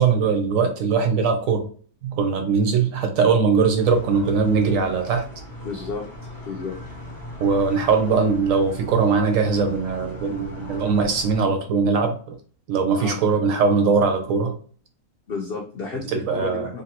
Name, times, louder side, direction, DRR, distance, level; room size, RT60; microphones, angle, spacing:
voice 1, 0.0-1.7 2.0-5.3 7.4-12.4 12.7-14.6 16.1-16.7, right 5 dB, 70° right, 5 dB, 0.9 m, -21 dB
sound 1, 3.8-11.4, left 1 dB, 25° left, 0.5 m, -38 dB
voice 2, 5.6-6.8 13.0-13.2 15.3-16.8, left 4 dB, 70° left, 0 dB, 0.5 m, -32 dB
3.2 x 2.6 x 2.7 m, 0.43 s
omnidirectional pair, 1.6 m